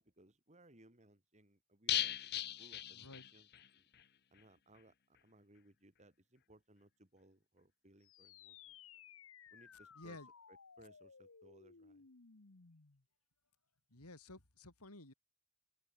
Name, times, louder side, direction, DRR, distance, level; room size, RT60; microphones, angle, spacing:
voice 1, 0.0-2.2 2.6-3.9 4.3-8.7 9.5-10.2 10.5-12.1, right 1 dB, 30° right, 3.5 m, -65 dB
sound 1, 1.9-3.7 3.9-4.0 4.4-4.5, left 12 dB, 45° left, 0.8 m, -38 dB
voice 2, 2.9-3.3 10.0-10.3 13.9-15.1, left 2 dB, 85° left, 4.6 m, -53 dB
sound 2, 8.0-13.0, left 7 dB, 60° left, 1.2 m, -59 dB
open air
head